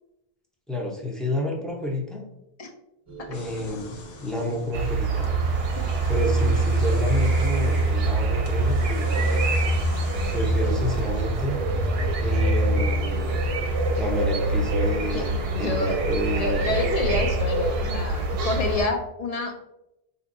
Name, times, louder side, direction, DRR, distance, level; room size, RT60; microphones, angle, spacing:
voice 1, 0.7-2.2 3.3-5.3 6.1-9.6 10.3-11.6 12.2-13.3 14.0-16.8, left 1 dB, ahead, -1 dB, 0.5 m, -30 dB
sound 1, 3.1-16.8, right 3 dB, 35° right, 0.8 m, -44 dB
sound 2, 3.3-11.6, left 3 dB, 75° left, 0.8 m, -44 dB
sound 3, 4.7-18.9, right 2 dB, 75° right, 0.8 m, -24 dB
voice 2, 15.1-16.0 16.3-19.6, left 2 dB, 50° left, 4 dB, 0.5 m, -28 dB
4.4 x 2.8 x 2.6 m, 0.87 s
omnidirectional pair, 1.0 m